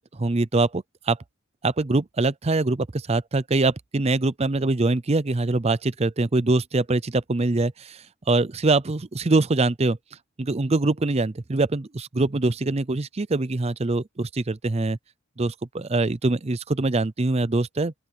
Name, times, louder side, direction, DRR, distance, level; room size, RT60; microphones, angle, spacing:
voice 1, 0.1-1.2 1.6-10.0 10.4-15.0 15.4-17.9, right 2 dB, 30° right, 0.6 m, -23 dB
open air
head